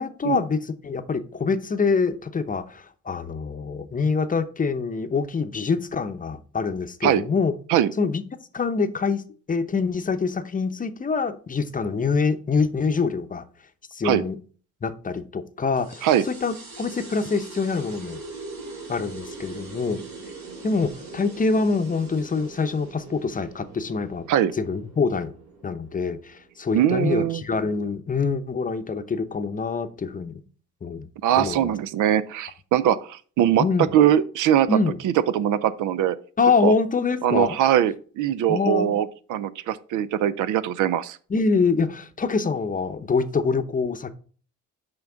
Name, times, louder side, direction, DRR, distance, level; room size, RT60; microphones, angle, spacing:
voice 1, 0.0-7.5 8.0-8.2 8.5-13.4 13.9-14.4 14.8-18.2 18.9-20.0 20.6-24.2 24.6-25.3 25.6-30.4 30.8-31.1 31.4-31.7 33.6-33.9 34.7-35.0 36.4-37.6 38.5-39.0 41.3-44.1, left 4 dB, 25° left, 0.7 m, -25 dB
sound 1, 15.8-26.8, right 3 dB, 65° right, 2.7 m, -42 dB
voice 2, 26.7-27.4 31.2-33.6 33.9-34.8 35.0-36.2 36.6-36.7 37.2-41.2, right 10 dB, 80° right, 0.5 m, -21 dB
5.8 x 5.2 x 3.8 m
cardioid pair, 90°, 30 cm